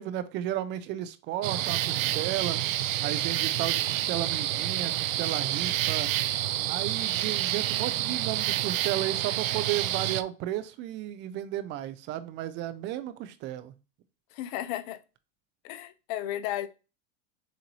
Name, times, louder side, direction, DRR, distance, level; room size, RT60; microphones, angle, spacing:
voice 1, 0.0-2.6 3.0-6.1 6.7-13.7, right 12 dB, 30° right, 0.4 m, -34 dB
sound 1, 1.4-10.2, right 14 dB, 85° right, 0.5 m, -28 dB
voice 2, 14.3-15.0 15.6-16.7, left 13 dB, 45° left, 0.6 m, -34 dB
6.8 x 2.6 x 2.9 m
supercardioid pair, 125°, 39 cm